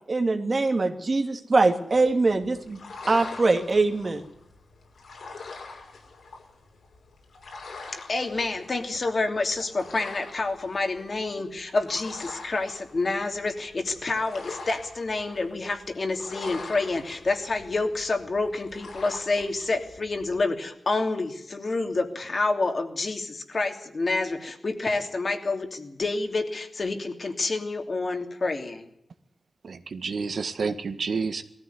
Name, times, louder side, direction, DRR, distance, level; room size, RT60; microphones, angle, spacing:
voice 1, 0.1-2.8 3.1-4.2, right 3 dB, 40° right, 6 dB, 2.5 m, -23 dB
sound 1, 1.9-20.4, left 4 dB, 80° left, 5.9 m, -44 dB
voice 2, 7.9-28.9, left 3 dB, 45° left, 5 dB, 3.0 m, -28 dB
voice 3, 29.6-31.4, right 5 dB, 70° right, 9 dB, 1.7 m, -29 dB
20.0 x 14.5 x 9.5 m, 0.80 s
wide cardioid pair, 115°, 0 cm